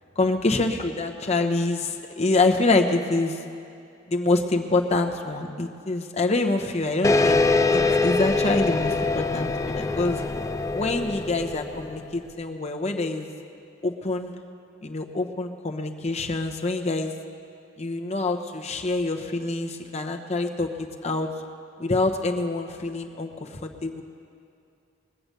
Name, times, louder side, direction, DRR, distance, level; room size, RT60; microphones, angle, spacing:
voice 1, 0.2-3.4 4.1-7.4 7.7-10.2 10.7-13.3 13.8-14.3 14.8-17.1 17.8-21.3 21.8-24.0, left 2 dB, 35° left, 4 dB, 0.9 m, -26 dB
sound 1, 7.0-12.1, left 3 dB, 15° left, 0.3 m, -24 dB
21.5 x 7.8 x 6.8 m, 2.5 s
head